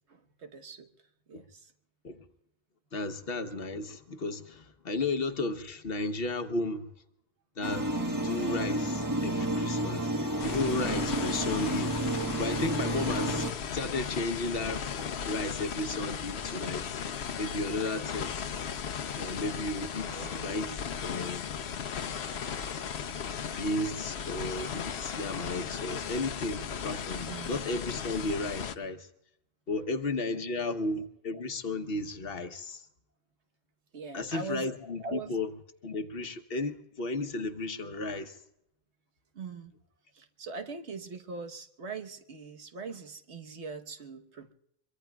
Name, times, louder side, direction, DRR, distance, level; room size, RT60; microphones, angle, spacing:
voice 1, 0.1-0.9 1.3-1.7 20.1-20.5 23.2-23.4 27.2-27.6 33.9-34.7 35.0-35.4 39.3-39.7 40.1-44.5, right 4 dB, 90° right, 1.4 m, -42 dB
voice 2, 2.9-6.9 7.6-7.9 8.2-10.1 10.4-11.9 12.4-13.5 13.7-16.8 17.4-18.3 19.1-21.4 23.5-29.1 29.7-32.9 34.1-35.5 35.8-38.4, left 2 dB, 60° left, 1.2 m, -34 dB
sound 1, 7.6-13.5, right 1 dB, 20° right, 1.3 m, -31 dB
sound 2, 10.4-28.8, left 7 dB, 75° left, 1.1 m, -36 dB
sound 3, 18.1-18.8 19.9-20.8 22.1-23.3 24.5-26.1, left 4 dB, 35° left, 0.8 m, -47 dB
24.5 x 23.5 x 2.3 m
omnidirectional pair, 1.1 m